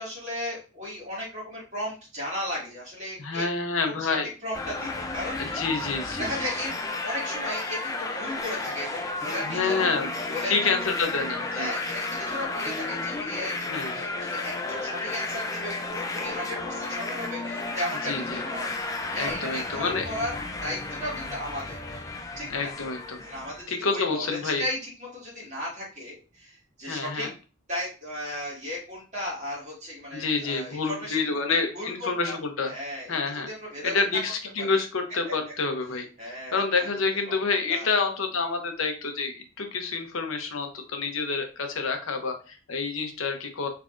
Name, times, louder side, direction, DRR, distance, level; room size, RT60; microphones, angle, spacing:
voice 1, 0.0-3.4 4.0-5.6 6.2-6.8 7.0-9.9 10.3-10.7 11.5-18.8 19.1-20.3 20.6-22.0 22.4-22.7 23.2-27.3 27.7-31.2 31.5-32.4 32.7-33.2 33.5-34.0 34.6-34.8 35.3-35.4 36.2-37.0 37.3-37.9, left 1 dB, 35° right, -6 dB, 1.8 m, -35 dB
voice 2, 3.2-4.3 5.4-6.3 9.4-10.1 10.5-11.7 13.7-13.9 18.0-18.4 19.2-20.0 22.5-23.2 23.7-24.6 26.9-27.3 30.1-32.7 33.1-33.5 33.8-36.1 36.5-43.7, left 4 dB, 80° left, 5 dB, 0.7 m, -28 dB
sound 1, 4.5-23.6, left 2 dB, 15° left, 0.4 m, -33 dB
3.6 x 3.3 x 2.5 m, 0.34 s
head